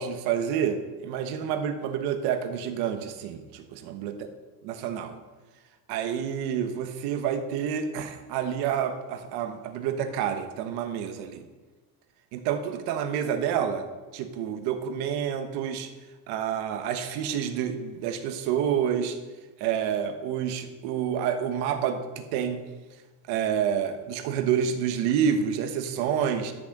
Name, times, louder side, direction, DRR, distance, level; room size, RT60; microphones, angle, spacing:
voice 1, 0.0-4.1 4.6-5.2 5.9-11.4 12.3-13.8 14.1-15.9 16.3-19.2 19.6-22.6 23.3-26.5, right 8 dB, 85° right, 8 dB, 1.3 m, -28 dB
12.5 x 6.3 x 6.5 m, 1.3 s
cardioid pair, 150°, 38 cm